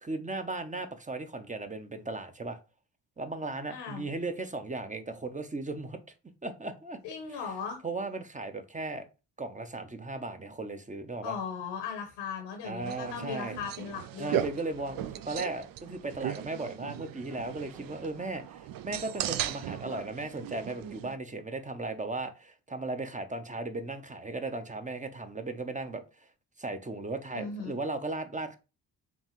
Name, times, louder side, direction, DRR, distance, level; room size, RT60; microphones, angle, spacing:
voice 1, 0.0-2.6 3.2-6.0 6.4-7.0 7.3-7.4 7.8-9.0 9.4-11.4 12.6-13.6 14.2-26.3 26.6-28.6, right 2 dB, 15° right, 0.8 m, -36 dB
voice 2, 3.7-4.1 7.0-7.8 11.2-14.4 27.3-27.8, left 6 dB, 80° left, 1.1 m, -38 dB
sound 1, 12.8-21.2, right 11 dB, 50° right, 0.5 m, -37 dB
5.3 x 2.5 x 3.0 m
hypercardioid pair, 45°, 45 cm